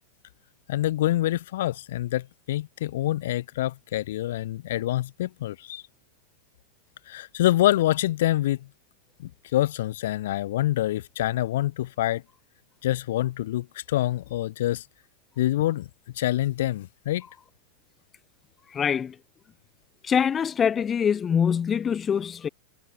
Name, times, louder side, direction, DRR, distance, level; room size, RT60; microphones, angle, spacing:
voice 1, 0.7-5.8 7.1-8.7 9.2-12.2 12.8-14.8 15.4-15.9 16.1-17.2, left 14 dB, 55° left, 0.9 m, -26 dB
voice 2, 18.7-19.2 20.0-22.5, left 7 dB, 20° left, 0.3 m, -24 dB
figure-of-eight pair, 90°, 0 cm